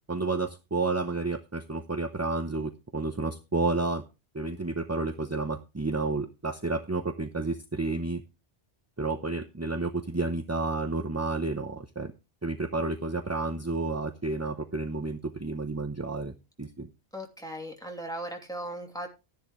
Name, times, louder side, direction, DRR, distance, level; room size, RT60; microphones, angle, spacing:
voice 1, 0.1-4.0 4.3-8.2 9.0-12.1 12.4-16.9, right 3 dB, 15° right, 7 dB, 0.6 m, -31 dB
voice 2, 17.1-19.1, right 1 dB, 5° left, 1 dB, 2.7 m, -37 dB
13.0 x 10.5 x 3.1 m, 0.28 s
omnidirectional pair, 1.2 m